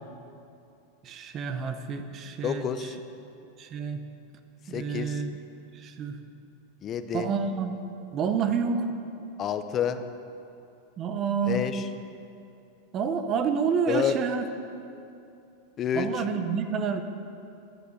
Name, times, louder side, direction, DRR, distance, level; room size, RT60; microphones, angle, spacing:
voice 1, 1.0-2.6 3.6-4.0 4.7-5.3 5.7-6.2 7.1-7.8 8.1-8.9 11.0-11.6 12.9-14.4 15.9-17.0, right 6 dB, 25° right, 8 dB, 0.6 m, -28 dB
voice 2, 2.4-3.0 4.7-5.2 6.8-7.3 9.4-10.0 11.5-11.9 13.9-14.2 15.8-16.2, left 8 dB, 20° left, 9 dB, 0.5 m, -29 dB
11.0 x 8.5 x 6.5 m, 2.6 s
supercardioid pair, 175°, 0 cm